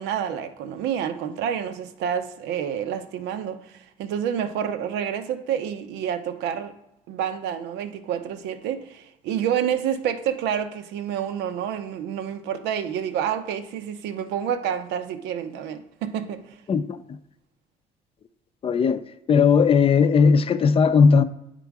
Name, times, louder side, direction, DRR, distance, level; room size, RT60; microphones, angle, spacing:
voice 1, 0.0-6.7 7.1-16.6, right 9 dB, 85° right, 0.7 m, -28 dB
voice 2, 16.7-17.2 18.6-19.0 19.3-21.2, left 5 dB, 35° left, 0.5 m, -18 dB
9.1 x 3.8 x 4.7 m
cardioid pair, 110°, 17 cm